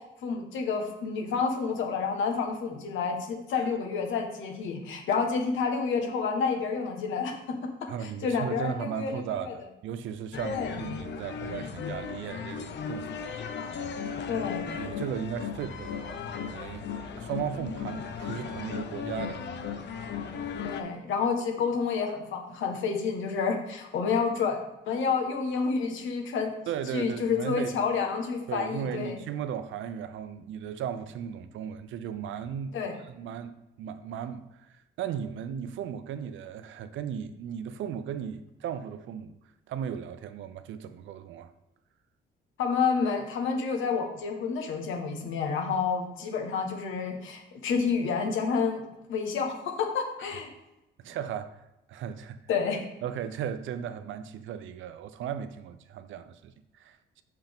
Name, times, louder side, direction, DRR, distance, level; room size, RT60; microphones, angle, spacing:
voice 1, 0.0-7.6 8.0-9.5 10.4-10.7 14.3-14.7 20.6-24.6 24.9-26.5 26.9-29.2 32.7-33.0 42.6-48.8 49.1-50.5 52.5-52.8, left 5 dB, 80° left, 1.1 m, -29 dB
voice 2, 7.9-13.4 13.6-14.0 14.8-16.9 17.2-19.8 26.7-27.9 28.5-32.8 33.1-39.3 39.7-41.5 51.0-52.4 53.0-57.2, right 8 dB, 75° right, 0.5 m, -36 dB
sound 1, 10.3-20.8, left 6 dB, 65° left, 0.7 m, -36 dB
5.8 x 5.7 x 3.5 m
cardioid pair, 90°, 20 cm